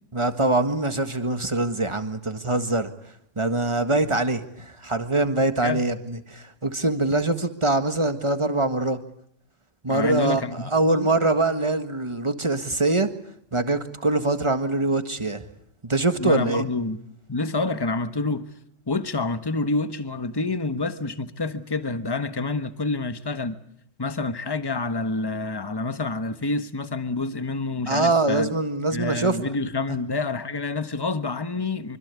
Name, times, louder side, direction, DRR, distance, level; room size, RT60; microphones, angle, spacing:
voice 1, 0.1-2.9 3.4-9.0 9.8-13.1 13.5-15.4 15.8-16.6 27.9-29.4, right 2 dB, 25° right, 1.7 m, -23 dB
voice 2, 9.9-11.1 16.2-17.0 17.3-18.4 18.9-23.6 24.0-28.5 28.9-32.0, left 3 dB, 20° left, 1.2 m, -28 dB
25.5 x 25.5 x 8.4 m
omnidirectional pair, 1.3 m